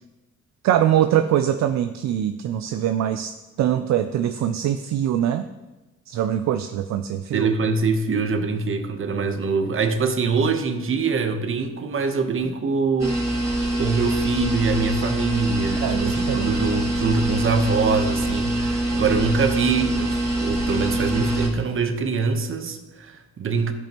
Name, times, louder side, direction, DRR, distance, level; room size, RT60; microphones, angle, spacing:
voice 1, 0.6-3.3 3.6-5.5 6.1-7.5 15.8-16.5, right 10 dB, 65° right, 9 dB, 0.5 m, -23 dB
voice 2, 7.3-13.2 13.7-23.7, right 4 dB, 45° right, 7 dB, 1.0 m, -24 dB
sound 1, 13.0-21.5, right 1 dB, 10° right, 3.1 m, -24 dB
14.5 x 5.2 x 3.0 m, 1.1 s
cardioid pair, 90°, 30 cm